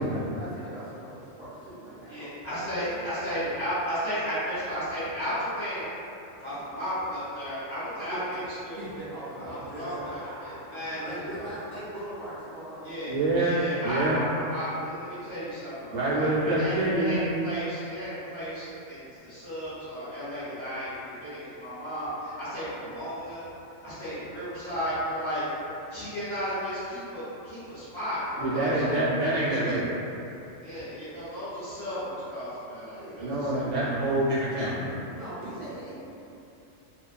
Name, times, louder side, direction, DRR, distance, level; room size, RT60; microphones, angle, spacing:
voice 1, 0.0-2.9 8.1-8.3 8.8-13.1 33.0-33.4 35.1-35.9, right 1 dB, 55° right, -14 dB, 0.7 m, -41 dB
voice 2, 2.1-5.9 6.4-8.9 9.5-11.5 12.8-13.1 13.5-23.4 23.8-25.4 25.9-29.0 30.6-33.8, equal, 25° left, -15 dB, 1.0 m, -34 dB
voice 3, 13.1-14.2 15.9-17.3 28.4-30.0 33.2-35.0, right 1 dB, 70° right, -10 dB, 1.0 m, -26 dB
2.6 x 2.3 x 2.3 m, 2.8 s
omnidirectional pair, 1.3 m